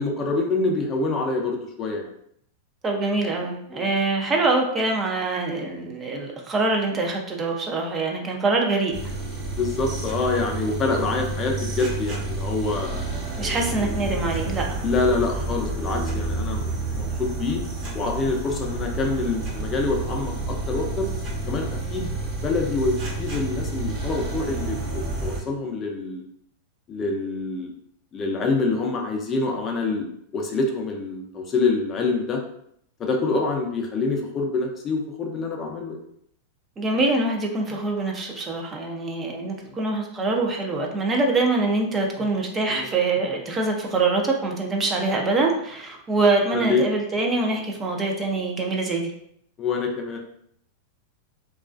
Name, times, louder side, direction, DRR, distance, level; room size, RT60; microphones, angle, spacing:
voice 1, 0.0-2.1 3.7-3.9 9.5-13.0 13.4-13.5 13.8-13.9 14.8-17.6 17.9-21.1 21.5-22.1 22.4-26.2 26.9-27.7 28.1-32.4 33.0-36.0 37.7-37.8 39.6-39.7 42.2-42.3 42.7-42.9 46.5-46.8 49.6-50.2, left 3 dB, 30° left, 1 dB, 0.5 m, -26 dB
voice 2, 2.8-8.9 13.4-14.8 36.8-49.1, right 3 dB, 25° right, 1 dB, 0.4 m, -24 dB
sound 1, 8.9-25.4, right 2 dB, 45° right, 0.9 m, -29 dB
2.3 x 2.2 x 2.4 m, 0.69 s
hypercardioid pair, 115°, 0 cm